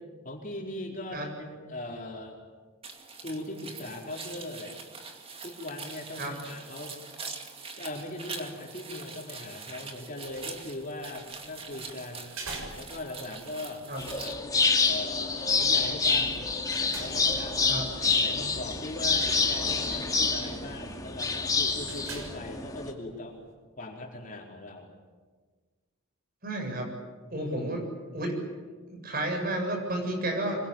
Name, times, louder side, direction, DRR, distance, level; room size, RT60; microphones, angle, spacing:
voice 1, 0.2-2.4 3.2-4.8 5.4-6.9 7.8-12.3 12.7-14.6 14.8-16.5 17.0-23.4 23.8-24.9 27.4-27.7, left 1 dB, 40° left, 0 dB, 4.4 m, -40 dB
sound 1, 2.8-14.3, right 4 dB, 25° right, 2.4 m, -43 dB
sound 2, 10.1-23.5, right 3 dB, 75° right, 6.6 m, -48 dB
sound 3, 14.0-22.9, left 4 dB, 15° left, 2.5 m, -27 dB
voice 2, 26.4-26.9 27.3-27.8 28.1-28.4 28.9-30.7, right 1 dB, 45° right, 3 dB, 7.7 m, -31 dB
26.0 x 23.0 x 8.9 m, 1.4 s
head